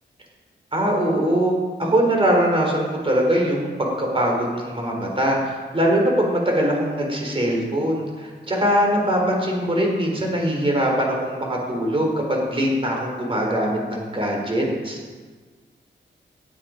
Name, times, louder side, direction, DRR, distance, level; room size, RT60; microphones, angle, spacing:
voice 1, 0.7-1.5 1.8-15.0, equal, 30° right, -1 dB, 4.0 m, -22 dB
18.5 x 11.0 x 5.2 m, 1.4 s
wide cardioid pair, 150°, 20 cm